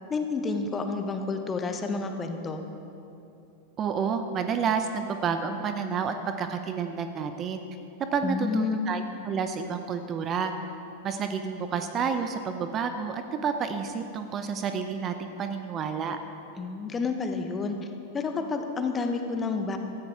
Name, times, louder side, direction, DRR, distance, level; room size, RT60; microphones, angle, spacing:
voice 1, 0.1-2.6 8.2-8.8 16.6-17.8 18.1-19.8, left 4 dB, 20° left, 5 dB, 1.2 m, -29 dB
voice 2, 3.8-7.6 8.1-10.5 11.0-16.2, right 6 dB, 30° right, 8 dB, 0.7 m, -30 dB
16.0 x 14.5 x 3.6 m, 2.7 s
figure-of-eight pair, 90°, 0 cm